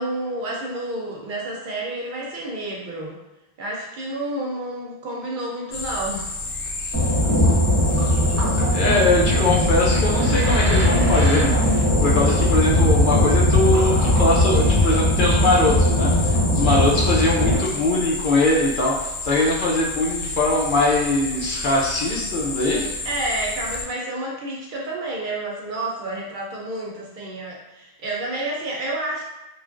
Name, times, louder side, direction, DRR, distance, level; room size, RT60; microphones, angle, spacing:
voice 1, 0.0-3.2 3.6-6.3 16.7-16.9 23.0-29.2, right 1 dB, 60° right, -3 dB, 0.7 m, -30 dB
sound 1, 5.7-23.8, left 2 dB, 85° left, 0.9 m, -31 dB
sound 2, 6.9-17.5, left 1 dB, 15° right, 0.7 m, -19 dB
voice 2, 8.7-22.8, left 2 dB, 60° left, -3 dB, 0.7 m, -22 dB
3.1 x 2.4 x 2.4 m, 1.0 s
omnidirectional pair, 1.0 m